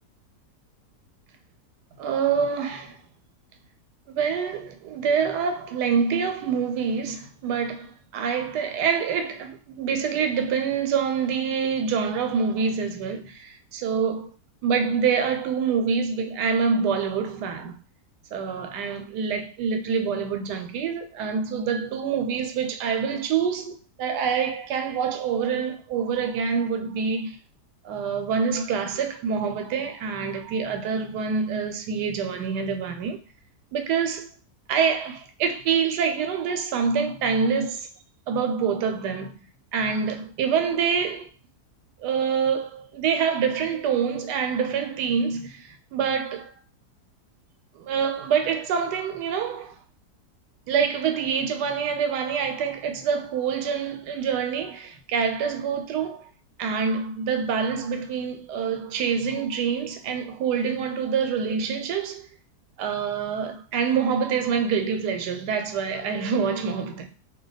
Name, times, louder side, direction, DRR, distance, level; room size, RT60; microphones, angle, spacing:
voice 1, 2.0-3.0 4.1-14.3 14.6-17.7 18.3-27.4 27.8-33.2 33.7-34.3 34.7-37.9 38.3-39.4 39.7-41.3 42.0-46.5 47.8-49.8 50.7-56.3 56.6-62.3 62.8-67.1, right 6 dB, 85° right, 1.2 m, -26 dB
2.6 x 2.2 x 3.9 m
omnidirectional pair, 1.8 m